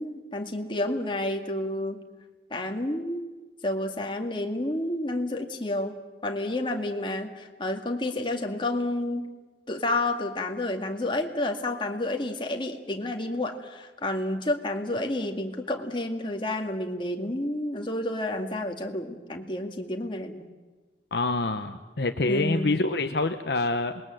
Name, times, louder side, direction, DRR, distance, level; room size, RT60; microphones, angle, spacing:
voice 1, 0.0-2.0 2.5-3.3 3.6-6.0 6.2-9.3 9.7-20.5 22.2-22.7, left 1 dB, 25° left, 3 dB, 2.1 m, -30 dB
voice 2, 21.1-24.0, left 2 dB, 60° left, 7 dB, 0.9 m, -26 dB
27.0 x 21.0 x 7.7 m, 1.3 s
head